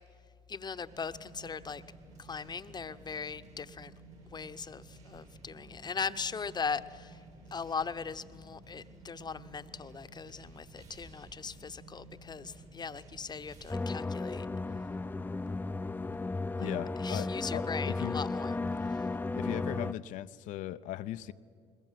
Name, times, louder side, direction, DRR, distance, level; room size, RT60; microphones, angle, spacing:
voice 1, 0.5-1.8 2.2-3.9 4.3-7.2 7.5-14.5 16.6-16.7 17.0-18.6, left 5 dB, 30° left, 12 dB, 0.9 m, -39 dB
sound 1, 0.9-13.7, right 4 dB, 55° right, 3.8 m, -54 dB
sound 2, 13.7-19.9, left 3 dB, 15° left, 0.5 m, -34 dB
voice 2, 16.6-18.2 19.3-21.3, left 13 dB, 70° left, 12 dB, 0.6 m, -38 dB
21.0 x 21.0 x 7.5 m, 2.1 s
hypercardioid pair, 65°, 14 cm